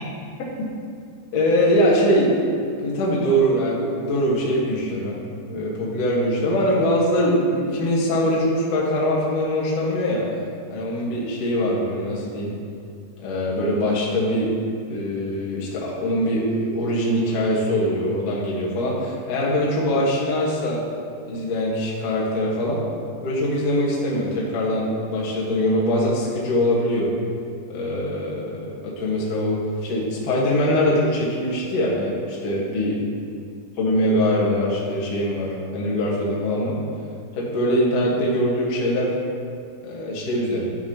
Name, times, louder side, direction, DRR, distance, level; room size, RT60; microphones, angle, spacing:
voice 1, 1.3-2.4 2.8-5.2 5.5-10.2 10.7-12.5 13.2-14.6 14.9-20.9 21.2-22.8 23.2-27.1 27.7-32.9 33.8-36.7 37.3-39.1 39.8-40.7, equal, 60° left, -5 dB, 1.7 m, -22 dB
12.0 x 5.8 x 2.9 m, 2.3 s
omnidirectional pair, 5.1 m